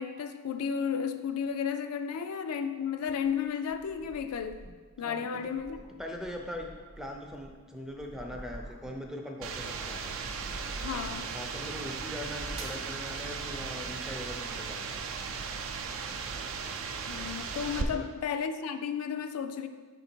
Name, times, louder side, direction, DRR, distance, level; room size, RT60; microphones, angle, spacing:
voice 1, 0.0-4.6 5.0-5.8 10.8-11.4 17.1-19.7, left 7 dB, 85° left, 0.4 m, -33 dB
sound 1, 3.1-5.0 5.4-9.2 9.6-11.4 12.0-12.9, right 1 dB, 30° right, 0.9 m, -47 dB
voice 2, 5.0-5.4 6.0-6.7 7.0-10.0 11.3-15.0 17.8-18.1, left 1 dB, ahead, 0.4 m, -41 dB
sound 2, 9.4-17.8, right 5 dB, 60° right, 0.4 m, -37 dB
5.6 x 3.9 x 4.4 m
head